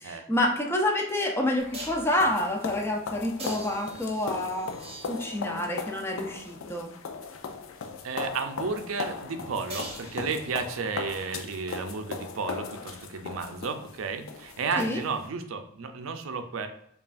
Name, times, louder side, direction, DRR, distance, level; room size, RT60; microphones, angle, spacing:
voice 1, 0.0-4.8 5.1-6.9 14.8-15.0, left 1 dB, 10° left, 2 dB, 0.5 m, -28 dB
sound 1, 0.6-0.7 1.7-2.1 3.4-5.5 9.7-10.8 14.6-14.7, right 1 dB, 30° right, 0.9 m, -42 dB
sound 2, 1.6-15.3, left 5 dB, 70° left, 0.4 m, -38 dB
voice 2, 8.0-16.7, right 5 dB, 75° right, 7 dB, 0.5 m, -33 dB
5.3 x 2.3 x 2.5 m, 0.69 s
head